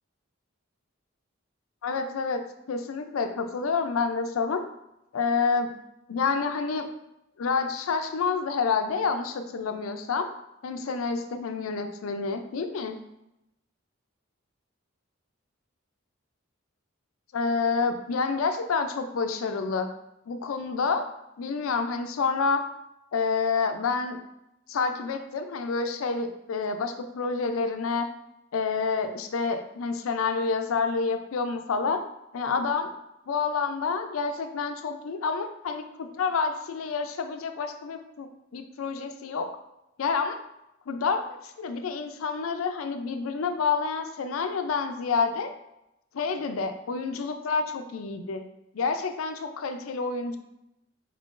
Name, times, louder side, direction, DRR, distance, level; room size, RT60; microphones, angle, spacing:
voice 1, 1.8-2.4 2.7-4.6 5.1-5.7 6.1-6.9 7.4-10.3 10.6-13.0 17.3-19.9 20.3-21.0 21.4-22.6 23.1-24.2 24.7-28.1 28.5-32.0 32.3-32.9 33.3-39.5 40.0-40.4 40.9-45.5 46.1-48.4 48.7-50.4, left 4 dB, 90° left, 7 dB, 0.4 m, -28 dB
4.4 x 3.7 x 2.5 m, 0.86 s
head